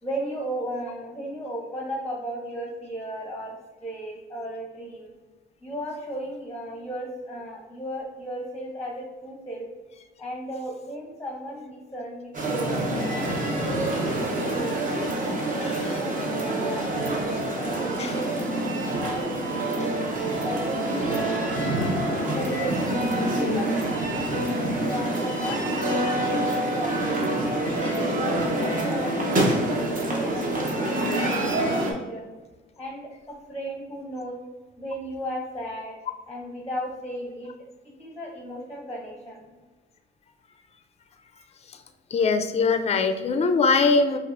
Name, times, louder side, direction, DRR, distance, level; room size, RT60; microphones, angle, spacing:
voice 1, 0.0-5.1 5.6-9.7 10.2-13.2 13.6-14.8 15.2-20.0 20.4-21.2 22.3-24.1 24.4-28.1 28.6-32.3 32.8-34.4 34.8-36.0 36.3-37.5 37.8-39.6, equal, 10° left, -1 dB, 0.7 m, -35 dB
sound 1, 12.3-31.9, right 1 dB, 40° right, 0.9 m, -26 dB
voice 2, 42.1-44.2, left 4 dB, 30° left, 8 dB, 0.4 m, -22 dB
5.2 x 2.4 x 2.5 m, 1.3 s
cardioid pair, 90°, 20 cm